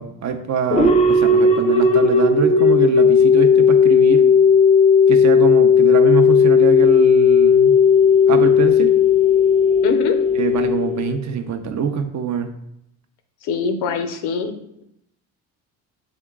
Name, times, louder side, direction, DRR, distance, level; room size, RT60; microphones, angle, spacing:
voice 1, 0.0-4.2 5.1-7.8 8.3-8.9 10.4-12.5, right 6 dB, 45° right, 6 dB, 0.6 m, -24 dB
sound 1, 0.7-11.4, left 5 dB, 15° left, 0.5 m, -14 dB
voice 2, 9.8-10.2 13.4-14.5, left 5 dB, 70° left, 8 dB, 0.7 m, -23 dB
3.7 x 3.6 x 3.6 m, 0.78 s
supercardioid pair, 75°, 41 cm